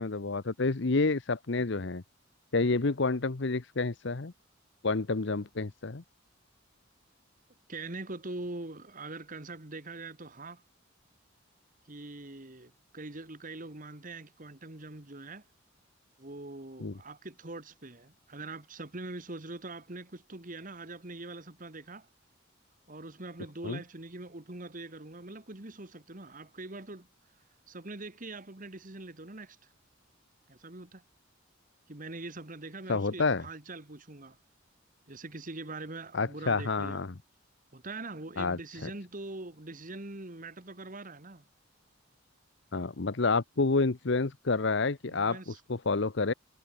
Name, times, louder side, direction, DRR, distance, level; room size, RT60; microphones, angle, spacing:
voice 1, 0.0-2.0 2.5-4.3 4.8-6.0 16.8-16.9 23.6-23.8 32.9-33.4 36.1-37.1 38.4-38.9 42.7-46.3, left 3 dB, 60° left, 0.9 m, -29 dB
voice 2, 7.7-10.6 11.9-15.4 16.2-22.1 22.9-27.1 27.7-29.6 30.5-31.0 31.9-34.4 35.1-37.0 37.7-41.4 45.1-45.6, right 2 dB, 40° right, 1.9 m, -43 dB
head